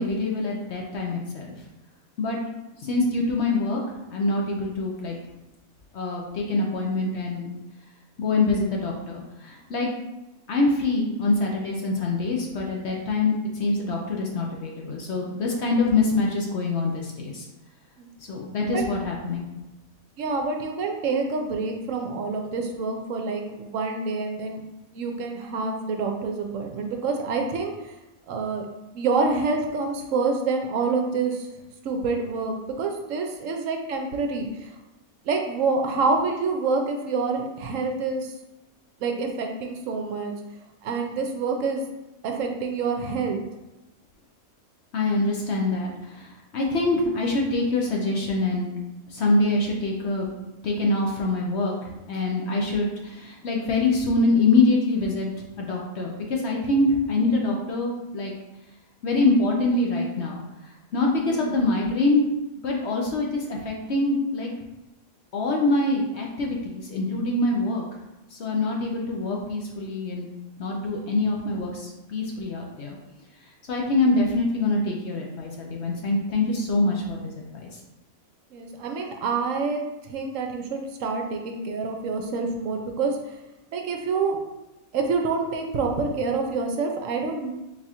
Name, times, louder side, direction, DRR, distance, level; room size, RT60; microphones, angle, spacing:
voice 1, 0.0-1.5 2.2-2.4 2.8-3.8 4.1-5.2 5.9-7.5 8.2-9.9 10.5-17.5 18.3-19.5 44.9-48.7 49.1-50.3 50.6-55.3 55.6-58.3 59.0-62.2 62.5-64.5 65.3-67.8 68.3-70.3 70.6-73.0 73.7-77.8, left 2 dB, 60° left, -1 dB, 0.8 m, -25 dB
voice 2, 20.2-24.6 24.9-27.9 28.3-28.6 28.9-31.5 31.8-34.7 35.3-38.3 39.0-40.3 40.8-41.9 42.2-43.4 61.3-61.5 78.5-79.8 80.1-83.4 83.7-84.4 84.9-87.5, right 4 dB, 70° right, 3 dB, 0.9 m, -27 dB
4.0 x 2.4 x 4.2 m, 0.98 s
omnidirectional pair, 1.5 m